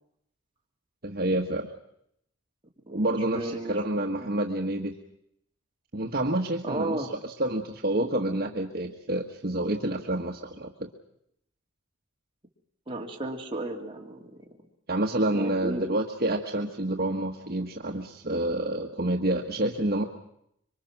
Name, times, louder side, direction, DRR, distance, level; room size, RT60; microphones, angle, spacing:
voice 1, 1.0-1.7 2.9-4.9 5.9-7.1 7.4-10.9 14.9-20.0, right 1 dB, 50° right, 2 dB, 1.5 m, -28 dB
voice 2, 2.9-4.3 6.6-7.1 12.9-14.4 15.3-15.8, right 2 dB, 25° right, 0 dB, 2.8 m, -34 dB
26.0 x 24.0 x 6.0 m, 0.74 s
head